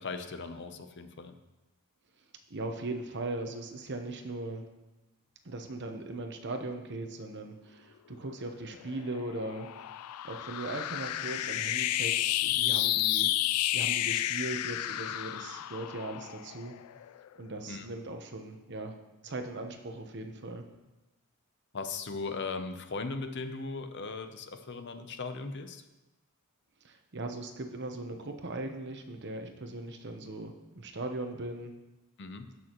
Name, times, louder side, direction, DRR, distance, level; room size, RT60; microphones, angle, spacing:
voice 1, 0.0-1.3 17.7-17.9 21.7-25.8 32.2-32.5, left 4 dB, 55° left, 8 dB, 0.7 m, -38 dB
voice 2, 2.5-4.6 5.4-9.7 10.2-13.3 13.7-16.7 17.4-18.9 19.2-20.6 26.8-31.7, right 2 dB, 55° right, 5 dB, 1.0 m, -39 dB
sound 1, 8.7-17.3, left 14 dB, 85° left, 0.3 m, -31 dB
17.0 x 6.2 x 3.1 m, 1.0 s
head